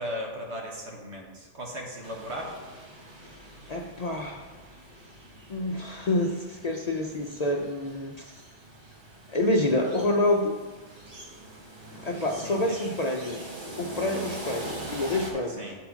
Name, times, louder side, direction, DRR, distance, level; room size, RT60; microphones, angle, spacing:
voice 1, 0.0-2.6 12.3-12.9 15.5-15.8, equal, 70° right, 0 dB, 1.6 m, -37 dB
sound 1, 2.0-15.3, right 1 dB, 45° right, 1.4 m, -43 dB
voice 2, 3.7-4.4 5.5-8.3 9.3-10.5 12.0-13.4 13.8-15.6, left 1 dB, 45° left, 2 dB, 0.5 m, -27 dB
8.2 x 4.5 x 5.6 m, 1.3 s
omnidirectional pair, 1.2 m